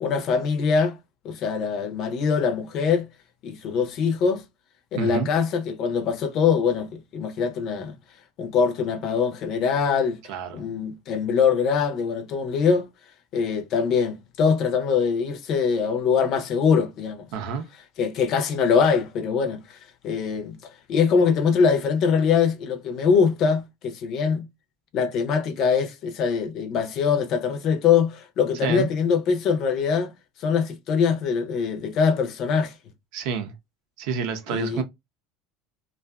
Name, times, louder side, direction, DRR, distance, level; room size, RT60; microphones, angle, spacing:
voice 1, 0.0-1.0 1.2-3.1 3.4-4.4 4.9-7.9 8.4-10.2 10.5-12.9 13.3-17.3 18.0-19.8 20.0-20.6 20.9-24.5 24.9-30.1 30.4-32.7 34.5-34.8, left 6 dB, 55° left, 0.6 m, -23 dB
voice 2, 5.0-5.3 10.3-10.6 17.3-17.7 28.6-28.9 33.1-33.5 34.0-34.8, right 6 dB, 65° right, 0.6 m, -28 dB
2.6 x 2.3 x 2.2 m
hypercardioid pair, 85°, 0 cm